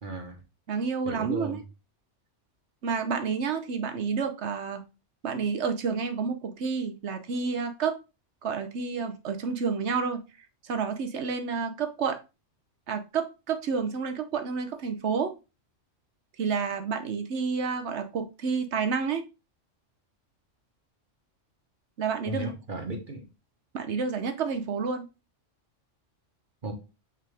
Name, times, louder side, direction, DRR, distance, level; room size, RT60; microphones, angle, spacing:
voice 1, 0.0-0.4 1.0-1.6 22.3-23.3 26.6-26.7, right 2 dB, 40° right, 1.4 m, -35 dB
voice 2, 0.7-1.6 2.8-4.8 5.2-7.9 8.4-10.2 10.6-12.2 12.9-15.3 16.4-19.2 22.0-22.5 23.7-25.1, right 5 dB, 65° right, 1.1 m, -29 dB
6.0 x 4.5 x 3.4 m
omnidirectional pair, 1.3 m